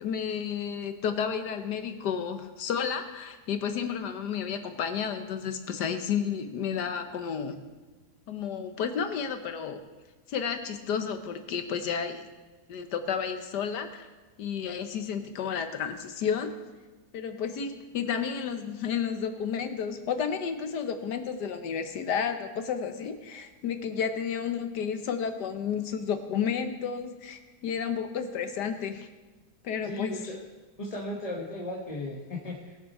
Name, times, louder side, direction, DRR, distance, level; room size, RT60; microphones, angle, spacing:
voice 1, 0.0-7.6 8.3-9.8 10.3-12.3 12.7-14.1 14.4-16.5 17.1-29.1 29.6-30.2, left 7 dB, 85° left, 8 dB, 1.6 m, -31 dB
voice 2, 29.8-30.4 30.8-32.8, left 1 dB, 25° left, -2 dB, 1.2 m, -36 dB
20.0 x 7.1 x 4.2 m, 1.3 s
omnidirectional pair, 1.8 m